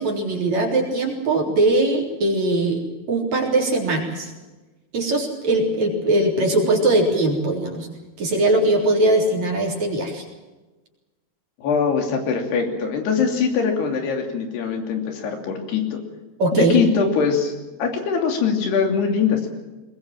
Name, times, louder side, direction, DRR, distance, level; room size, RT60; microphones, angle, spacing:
voice 1, 0.0-4.3 4.9-7.9 8.2-10.2 16.4-16.8, right 2 dB, 45° right, 1 dB, 4.7 m, -20 dB
voice 2, 11.6-16.0 16.5-17.5 17.8-19.5, left 6 dB, 75° left, 4 dB, 4.9 m, -22 dB
21.5 x 21.0 x 7.5 m, 1.2 s
omnidirectional pair, 4.8 m